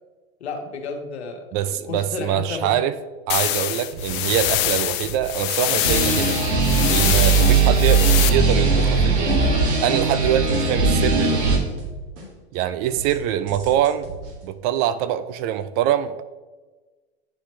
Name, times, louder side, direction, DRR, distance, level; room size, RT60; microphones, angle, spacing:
voice 1, 0.4-2.7 7.5-7.7, left 4 dB, 85° left, 3 dB, 1.4 m, -33 dB
voice 2, 1.5-2.9 3.3-6.4 6.9-9.4 9.8-11.5 12.5-14.1 14.4-16.2, right 11 dB, 40° right, 14 dB, 0.4 m, -24 dB
sound 1, 3.3-8.3, left 15 dB, 35° left, 0.5 m, -24 dB
sound 2, 3.9-5.4 5.8-12.6 12.9-14.4, right 2 dB, 60° right, 2.1 m, -37 dB
sound 3, 5.8-11.6, right 4 dB, 80° right, 1.6 m, -19 dB
9.8 x 4.2 x 3.1 m, 1.3 s
hypercardioid pair, 110°, 32 cm